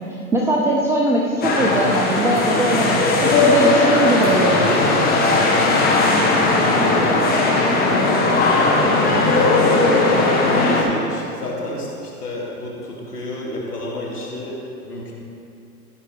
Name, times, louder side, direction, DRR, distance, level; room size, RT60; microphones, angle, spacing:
voice 1, 0.3-4.7, right 1 dB, 5° right, -3 dB, 0.5 m, -20 dB
sound 1, 1.4-10.8, left 3 dB, 20° left, 1.6 m, -17 dB
voice 2, 6.4-7.1 7.8-8.3 8.6-15.1, left 1 dB, 90° left, -3 dB, 2.6 m, -31 dB
14.5 x 5.1 x 5.2 m, 2.6 s
hypercardioid pair, 110°, 45 cm